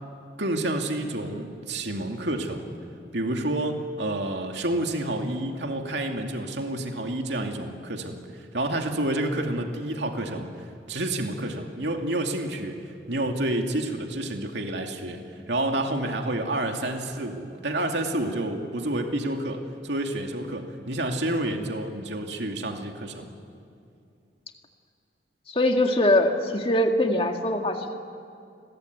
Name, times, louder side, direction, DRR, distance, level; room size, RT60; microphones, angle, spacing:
voice 1, 0.4-2.7 3.1-10.5 10.9-12.8 13.1-23.3, right 1 dB, 80° right, 3 dB, 2.5 m, -29 dB
voice 2, 25.5-27.9, left 1 dB, 30° left, 4 dB, 2.0 m, -22 dB
29.0 x 21.5 x 9.4 m, 2.5 s
head